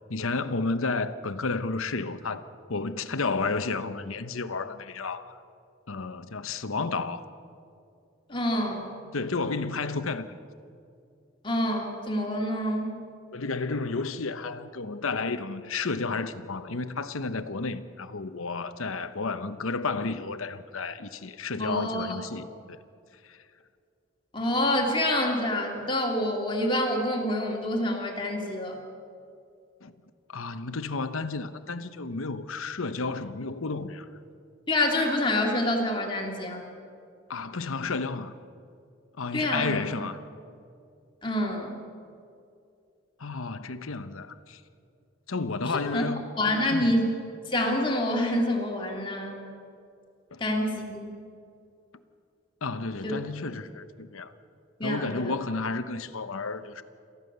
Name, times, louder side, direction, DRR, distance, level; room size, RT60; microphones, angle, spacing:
voice 1, 0.1-2.4 2.7-5.4 5.9-7.2 9.1-10.4 13.3-22.8 23.3-23.4 29.8-29.9 30.3-34.0 37.3-38.3 39.2-40.2 43.2-44.6 45.3-46.3 46.7-47.0 50.3-50.4 52.6-54.3 54.8-56.8, left 3 dB, 80° left, 1.0 m, -32 dB
voice 2, 8.3-8.9 11.4-12.9 21.6-22.2 24.3-28.8 34.7-36.6 39.3-40.0 41.2-41.8 45.7-46.1 46.4-47.2 47.5-49.4 50.4-51.1 53.0-53.1 54.8-55.3, left 1 dB, 25° left, 2.5 m, -27 dB
27.5 x 14.5 x 6.7 m
head